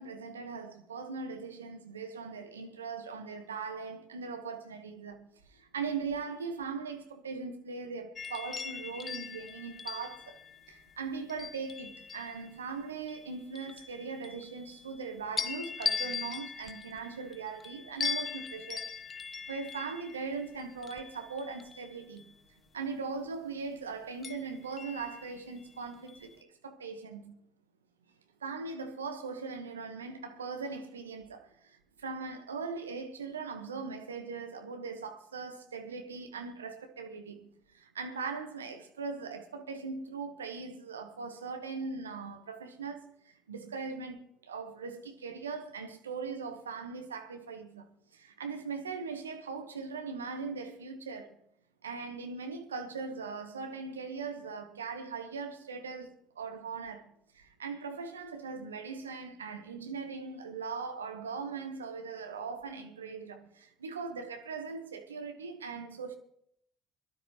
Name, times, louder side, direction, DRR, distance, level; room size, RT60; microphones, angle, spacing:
voice 1, 0.0-5.3 5.6-10.4 10.7-18.8 19.5-22.3 22.7-26.4 26.6-27.4 28.4-31.5 32.0-37.5 37.8-43.0 43.5-47.8 48.1-51.3 51.8-56.1 56.4-57.0 57.4-66.2, right 5 dB, 90° right, 1.1 m, -40 dB
sound 1, 8.2-12.5 13.1-15.0 15.4-22.3 24.2-25.6 26.1-26.3, left 6 dB, 35° left, 1.0 m, -40 dB
23.5 x 12.0 x 3.0 m
hypercardioid pair, 55°, 0 cm